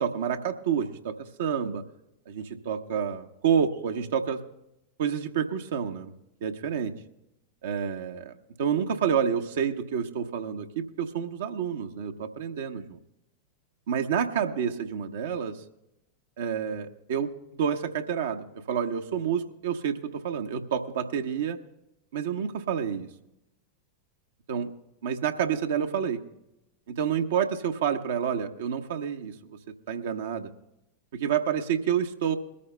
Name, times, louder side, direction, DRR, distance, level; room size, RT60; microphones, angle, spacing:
voice 1, 0.0-1.8 2.3-4.4 5.0-6.1 6.4-6.9 7.6-13.0 13.9-15.6 16.4-21.6 22.1-23.1 24.5-24.7 25.0-26.2 26.9-29.6 29.9-30.5 31.1-32.4, right 7 dB, 60° right, 5 dB, 0.9 m, -29 dB
22.0 x 14.0 x 2.2 m, 0.88 s
figure-of-eight pair, 90°, 0 cm